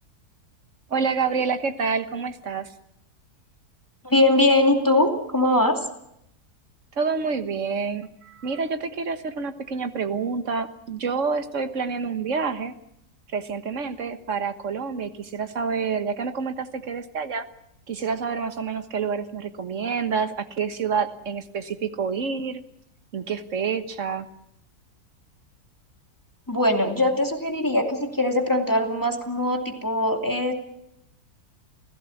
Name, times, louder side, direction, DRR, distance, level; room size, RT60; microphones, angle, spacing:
voice 1, 0.9-2.7 7.0-12.7 13.3-17.5 17.9-22.6 23.1-24.3, right 5 dB, 55° right, 9 dB, 1.7 m, -28 dB
voice 2, 4.0-5.8 26.5-30.5, left 1 dB, 10° left, 2 dB, 2.6 m, -21 dB
29.5 x 16.5 x 7.1 m, 0.78 s
omnidirectional pair, 1.6 m